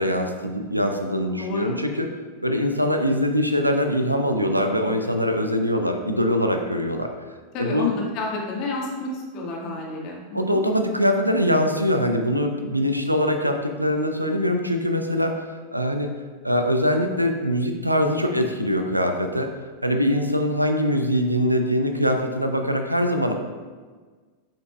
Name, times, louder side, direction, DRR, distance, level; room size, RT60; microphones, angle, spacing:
voice 1, 0.0-2.1 2.4-7.1 7.6-7.9 10.3-16.1 16.4-19.5 19.8-23.3, equal, 90° right, 5 dB, 0.5 m, -23 dB
voice 2, 1.4-1.7 7.5-10.6, left 3 dB, 40° left, -1 dB, 1.4 m, -30 dB
7.3 x 5.8 x 2.3 m, 1.5 s
figure-of-eight pair, 90°, 0 cm